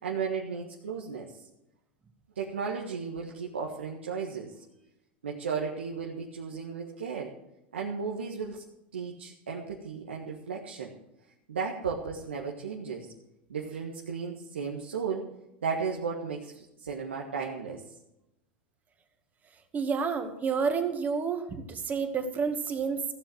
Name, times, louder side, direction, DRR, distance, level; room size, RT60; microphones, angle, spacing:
voice 1, 0.0-1.3 2.3-4.6 5.2-7.3 7.7-8.6 8.9-10.9 11.5-13.1 13.5-15.3 15.6-17.8, right 5 dB, 85° right, -2 dB, 1.6 m, -34 dB
voice 2, 19.7-23.0, right 5 dB, 25° right, 7 dB, 2.1 m, -29 dB
15.5 x 7.1 x 7.9 m, 0.88 s
hypercardioid pair, 90°, 6 cm